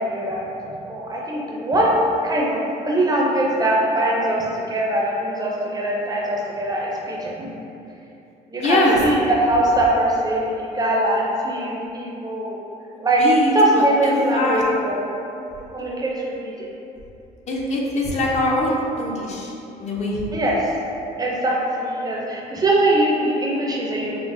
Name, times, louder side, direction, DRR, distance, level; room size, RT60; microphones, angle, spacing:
voice 1, 0.0-7.5 8.5-12.6 13.0-13.2 13.5-15.0 15.6-16.7 20.3-20.6 21.2-24.2, right 1 dB, 25° right, -3 dB, 0.5 m, -22 dB
voice 2, 8.6-9.0 13.2-14.6 17.5-20.2, left 1 dB, 40° left, -3 dB, 0.5 m, -22 dB
4.7 x 2.0 x 2.5 m, 2.8 s
cardioid pair, 110°, 17 cm